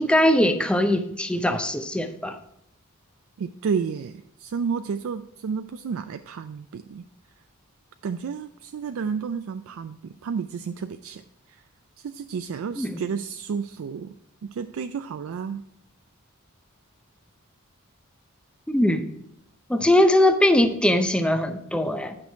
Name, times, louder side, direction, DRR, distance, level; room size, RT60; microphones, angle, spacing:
voice 1, 0.0-2.4 12.8-13.0 18.7-19.1 19.7-22.1, left 1 dB, 5° left, 8 dB, 0.6 m, -21 dB
voice 2, 3.4-7.1 8.0-11.2 11.5-11.6 12.0-14.1 14.5-15.6, right 6 dB, 70° right, 9 dB, 0.3 m, -31 dB
9.5 x 6.1 x 4.5 m, 0.77 s
head